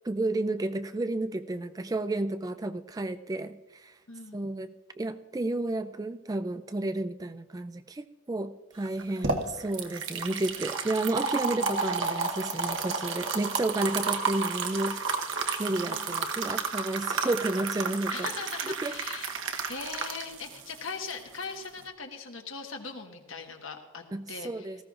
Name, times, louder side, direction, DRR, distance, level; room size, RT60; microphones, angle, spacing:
voice 1, 0.0-4.0 4.3-18.3 18.7-18.9 24.1-24.8, right 2 dB, 15° right, 11 dB, 0.3 m, -32 dB
voice 2, 4.1-4.4 11.6-12.0 15.8-16.2 18.1-19.3 19.7-24.8, left 5 dB, 70° left, 4 dB, 1.4 m, -40 dB
sound 1, 8.9-21.8, right 4 dB, 65° right, 1.1 m, -32 dB
18.5 x 15.0 x 2.5 m, 1.2 s
head